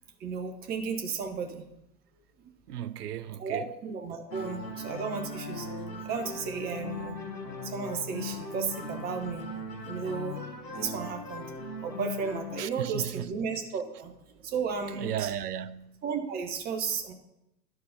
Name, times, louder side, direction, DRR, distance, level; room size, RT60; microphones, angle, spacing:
voice 1, 0.2-1.6 3.4-5.7 6.0-7.2 7.6-9.4 9.8-10.4 10.8-11.4 11.8-14.1 14.4-15.3 16.0-17.1, right 5 dB, 20° right, 0.9 m, -34 dB
voice 2, 2.7-3.7 12.6-13.3 15.0-15.9, right 10 dB, 65° right, 0.6 m, -35 dB
sound 1, 4.3-12.6, left 2 dB, 85° left, 1.2 m, -39 dB
11.0 x 4.8 x 5.1 m
figure-of-eight pair, 110°, 49 cm